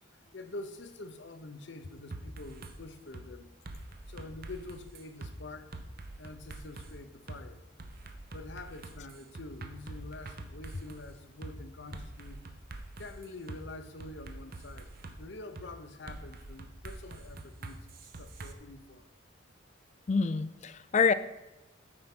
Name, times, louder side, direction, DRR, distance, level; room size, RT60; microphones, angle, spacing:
voice 1, 0.1-3.5 4.1-5.7 6.2-7.6 8.3-12.4 13.0-14.9 15.2-19.0, left 2 dB, 60° left, 8 dB, 0.7 m, -46 dB
sound 1, 2.1-2.7 3.1-3.3 3.6-5.3 5.7-6.9 7.3-7.4 7.8-11.0 11.4-11.5 11.9-13.6 14.0-15.2 15.6-15.7 16.1-18.5, right 2 dB, 45° right, 0.7 m, -45 dB
voice 2, 20.1-21.1, left 5 dB, 35° left, 13 dB, 0.3 m, -26 dB
8.7 x 4.6 x 5.9 m, 0.97 s
head